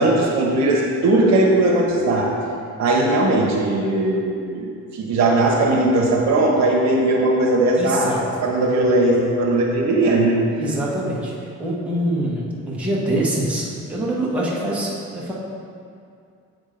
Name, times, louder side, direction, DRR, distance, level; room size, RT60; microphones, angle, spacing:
voice 1, 0.0-2.3 2.8-8.1 8.4-10.4, right 2 dB, 65° right, -1 dB, 1.1 m, -18 dB
voice 2, 7.8-8.2 10.6-15.3, right 1 dB, 5° right, -7 dB, 1.1 m, -24 dB
7.8 x 3.6 x 5.1 m, 2.3 s
cardioid pair, 150°, 29 cm